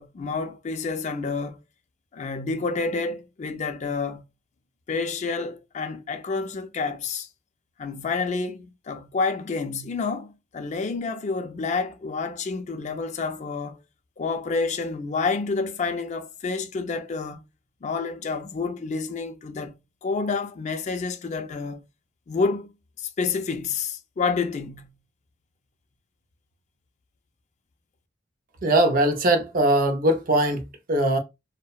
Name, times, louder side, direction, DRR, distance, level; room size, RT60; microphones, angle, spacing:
voice 1, 0.0-1.6 2.1-4.2 4.9-7.3 7.8-13.8 14.2-17.4 17.8-19.7 20.0-21.8 22.3-22.7 23.0-24.9, left 4 dB, 35° left, 0.3 m, -29 dB
voice 2, 28.6-31.2, right 1 dB, 45° right, 0.5 m, -21 dB
2.7 x 2.0 x 2.3 m
head